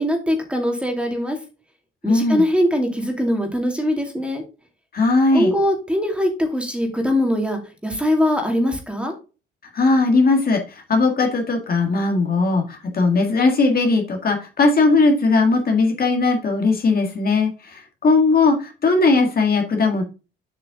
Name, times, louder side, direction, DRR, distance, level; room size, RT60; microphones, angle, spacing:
voice 1, 0.0-1.4 2.0-4.4 5.3-9.1, equal, 5° right, 3 dB, 2.3 m, -22 dB
voice 2, 2.0-2.4 4.9-5.5 9.7-20.0, left 3 dB, 50° left, 3 dB, 1.8 m, -18 dB
7.6 x 5.4 x 3.7 m, 0.32 s
cardioid pair, 90°, 20 cm